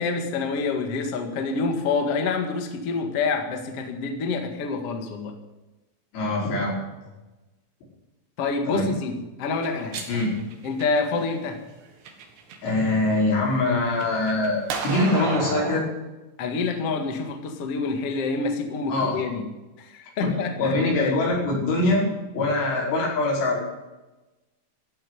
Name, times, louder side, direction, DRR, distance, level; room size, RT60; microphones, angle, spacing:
voice 1, 0.0-5.3 8.4-10.1 10.6-11.6 16.4-19.4 19.8-21.2, left 4 dB, 50° left, 4 dB, 1.8 m, -27 dB
voice 2, 6.1-6.8 8.7-8.9 10.1-10.3 12.6-15.8 18.9-19.2 20.2-23.7, left 2 dB, 80° left, -3 dB, 7.6 m, -23 dB
sound 1, 9.5-11.3 11.9-12.7 13.1-15.8, right 5 dB, 65° right, 3.8 m, -33 dB
15.0 x 8.8 x 9.8 m, 1.1 s
omnidirectional pair, 5.4 m